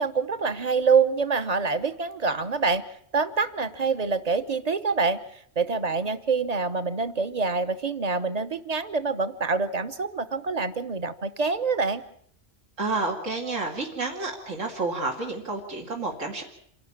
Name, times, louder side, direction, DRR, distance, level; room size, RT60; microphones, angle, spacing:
voice 1, 0.0-2.8 3.1-5.2 5.6-12.0, right 4 dB, 35° right, 11 dB, 1.0 m, -26 dB
voice 2, 12.8-16.4, right 3 dB, 80° right, 0 dB, 2.9 m, -30 dB
27.0 x 12.0 x 8.7 m, 0.64 s
omnidirectional pair, 1.3 m